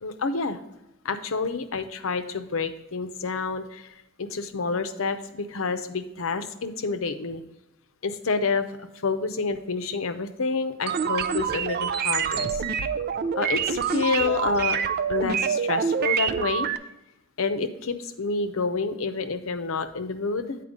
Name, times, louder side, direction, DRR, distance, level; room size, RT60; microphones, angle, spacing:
voice 1, 0.0-0.6 1.0-3.9 4.2-7.4 8.0-12.6 13.3-14.8 15.1-16.7 17.4-20.6, left 4 dB, 80° left, 8 dB, 0.7 m, -28 dB
sound 1, 10.9-16.8, right 7 dB, 50° right, 0.4 m, -26 dB
8.5 x 4.5 x 5.1 m, 0.91 s
head